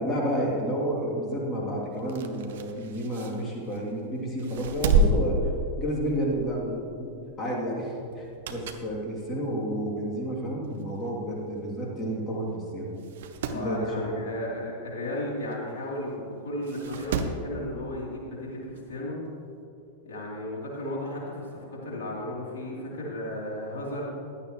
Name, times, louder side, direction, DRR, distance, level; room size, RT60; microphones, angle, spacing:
voice 1, 0.0-5.5 5.8-12.9 13.5-14.3, right 1 dB, 20° left, -3 dB, 2.8 m, -30 dB
sound 1, 2.0-3.9 4.4-6.3 6.6-6.8 8.1-9.0 9.4-9.5 10.4-10.5 10.7-10.8 11.0-11.1 12.0-12.2 12.5-12.6 13.0-13.7 15.5-15.6 16.6-17.5 18.8-18.9, right 3 dB, 60° right, 0.8 m, -29 dB
voice 2, 13.5-19.2 20.0-24.1, left 1 dB, 60° left, -4 dB, 3.2 m, -34 dB
15.5 x 11.0 x 3.1 m, 2.6 s
figure-of-eight pair, 90°, 0 cm